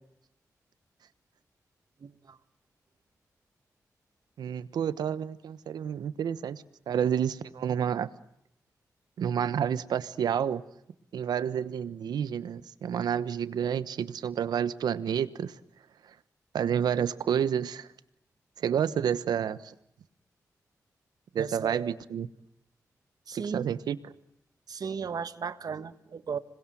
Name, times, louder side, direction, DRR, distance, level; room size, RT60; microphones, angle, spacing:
voice 1, 2.0-2.4 21.4-22.0 23.3-23.7 24.7-26.4, right 6 dB, 70° right, 12 dB, 1.6 m, -36 dB
voice 2, 4.4-8.1 9.2-10.6 11.1-15.5 16.5-17.9 18.6-19.7 21.3-22.3 23.3-24.0, right 8 dB, 85° right, 15 dB, 1.2 m, -29 dB
26.5 x 21.0 x 9.2 m, 0.79 s
supercardioid pair, 45°, 7 cm